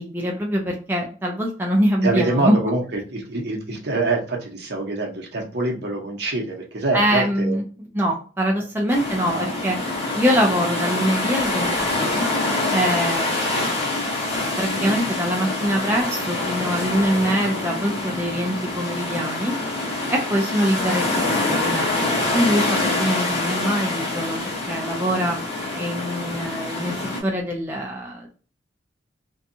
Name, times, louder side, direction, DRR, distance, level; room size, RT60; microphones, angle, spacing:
voice 1, 0.0-2.6 6.9-7.6 7.9-9.8 10.1-12.2 12.7-13.7 14.6-19.5 20.1-24.4 24.7-25.4 25.7-26.9 27.2-28.3, equal, 10° right, -1 dB, 0.4 m, -23 dB
voice 2, 2.0-7.6 9.3-9.6, right 2 dB, 55° right, 1 dB, 0.7 m, -25 dB
sound 1, 8.9-27.2, left 2 dB, 30° left, 0.9 m, -25 dB
2.7 x 2.2 x 2.6 m, 0.39 s
head